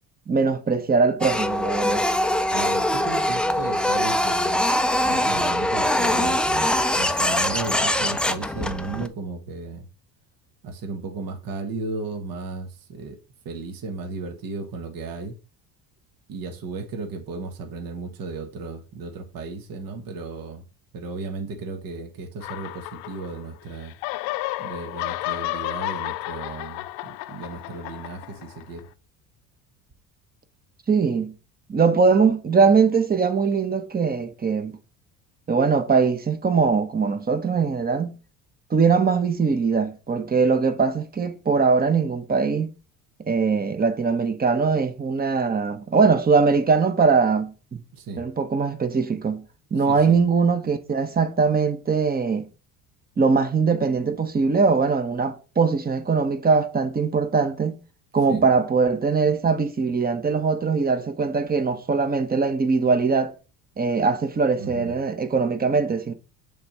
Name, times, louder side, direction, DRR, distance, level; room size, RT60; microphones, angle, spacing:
voice 1, 0.3-2.1 30.9-31.3 31.7-34.8 35.5-38.2 38.7-42.7 43.2-47.8 48.2-49.4 49.7-52.5 53.2-57.8 58.1-63.3 63.8-66.1, right 5 dB, 20° right, 1.0 m, -21 dB
Printer, 1.2-9.1, left 1 dB, ahead, 0.4 m, -23 dB
voice 2, 2.5-4.6 5.1-9.9 10.6-13.2 13.4-15.4 16.3-20.6 20.9-23.9 24.6-28.9 47.9-48.3 49.9-50.2 58.3-58.4 64.6-64.9, right 3 dB, 55° right, 1.4 m, -35 dB
sound 1, 22.4-23.6 23.8-28.8, left 18 dB, 80° left, 0.6 m, -32 dB
6.5 x 3.6 x 5.5 m
supercardioid pair, 85°, 40 cm